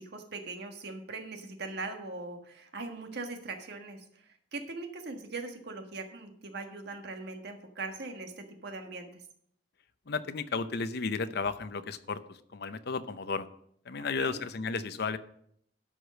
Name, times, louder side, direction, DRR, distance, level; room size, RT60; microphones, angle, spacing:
voice 1, 0.0-9.2 14.2-14.4, right 3 dB, 60° right, 5 dB, 1.5 m, -41 dB
voice 2, 10.1-13.5 13.8-15.2, left 4 dB, 60° left, 12 dB, 0.7 m, -33 dB
12.5 x 5.0 x 6.4 m, 0.68 s
head